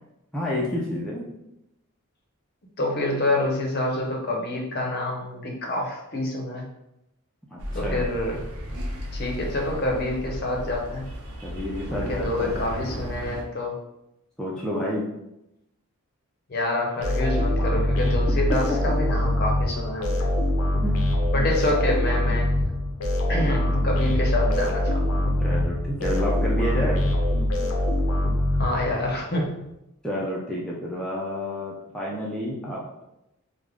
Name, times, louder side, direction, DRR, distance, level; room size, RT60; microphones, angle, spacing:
voice 1, 0.3-1.3 7.5-8.0 11.4-12.6 14.4-15.1 18.5-18.8 20.8-21.0 25.4-27.0 30.0-33.0, equal, 5° left, -5 dB, 0.4 m, -29 dB
voice 2, 2.8-6.7 7.7-8.4 9.1-11.1 11.9-13.8 16.5-20.3 21.3-22.7 23.3-25.1 28.5-29.6, left 1 dB, 45° left, 0 dB, 0.6 m, -27 dB
sound 1, 7.6-13.4, equal, 75° right, 0.6 m, -34 dB
sound 2, 17.0-29.2, left 1 dB, 90° left, 0.6 m, -23 dB
3.4 x 2.0 x 3.5 m, 0.87 s
head